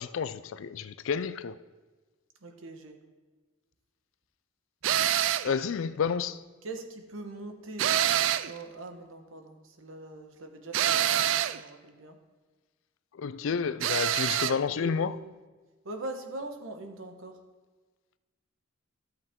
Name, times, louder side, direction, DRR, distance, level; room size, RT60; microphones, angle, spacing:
voice 1, 0.0-1.6 5.4-6.4 13.1-15.2, left 6 dB, 75° left, 0.4 m, -30 dB
voice 2, 2.4-3.0 6.6-7.9 8.3-12.2 14.1-14.4 14.7-15.3 15.8-17.4, right 2 dB, 85° right, 1.2 m, -42 dB
sound 1, 4.8-5.6 7.8-8.6 10.7-11.6 13.8-14.6, right 11 dB, 65° right, 0.3 m, -26 dB
13.0 x 7.9 x 3.7 m
head